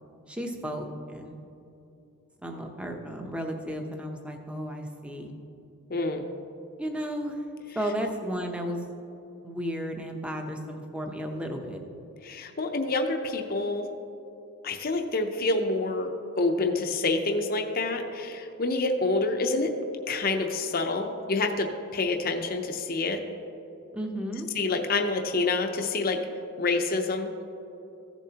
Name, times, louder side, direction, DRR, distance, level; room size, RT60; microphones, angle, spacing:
voice 1, 0.3-1.4 2.4-5.3 6.8-7.4 7.7-8.8 9.4-11.8 23.9-24.5, equal, 5° right, 3 dB, 0.7 m, -33 dB
voice 2, 5.9-6.3 12.2-13.9 14.6-19.7 20.1-23.2 24.5-26.2 26.6-27.3, left 3 dB, 40° left, 4 dB, 0.6 m, -27 dB
15.0 x 7.1 x 2.8 m, 2.9 s
head